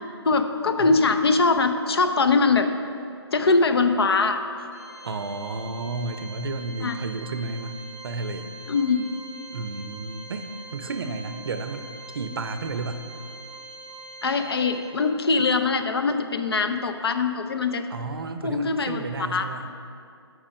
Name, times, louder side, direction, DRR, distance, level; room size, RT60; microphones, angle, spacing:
voice 1, 0.2-2.7 3.3-4.4 6.8-7.0 8.7-9.1 14.2-17.9 18.4-19.5, left 4 dB, 60° left, 8 dB, 0.6 m, -22 dB
Organ, 4.7-15.4, right 2 dB, 15° left, 0.6 m, -43 dB
voice 2, 5.0-7.8 8.0-8.5 9.5-11.9 12.1-13.0 15.4-15.5 17.9-19.7, right 3 dB, 55° right, 9 dB, 0.5 m, -32 dB
7.4 x 4.8 x 5.2 m, 2.5 s
hypercardioid pair, 170°, 14 cm